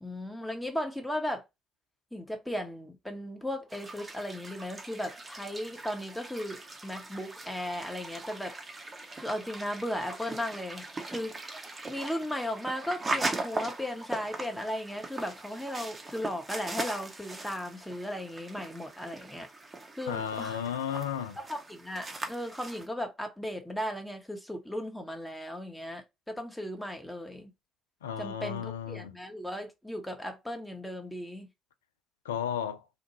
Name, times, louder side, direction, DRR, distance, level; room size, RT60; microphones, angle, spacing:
voice 1, 0.0-1.4 2.1-8.5 9.2-11.5 11.8-19.5 19.9-20.6 21.4-27.5 28.2-31.5, left 1 dB, 5° left, 0.7 m, -36 dB
sound 1, 3.7-22.9, right 2 dB, 30° right, 0.7 m, -40 dB
voice 2, 20.1-21.4 28.0-29.1 32.3-32.8, left 8 dB, 80° left, 0.3 m, -33 dB
2.8 x 2.2 x 2.9 m
figure-of-eight pair, 50°, 0 cm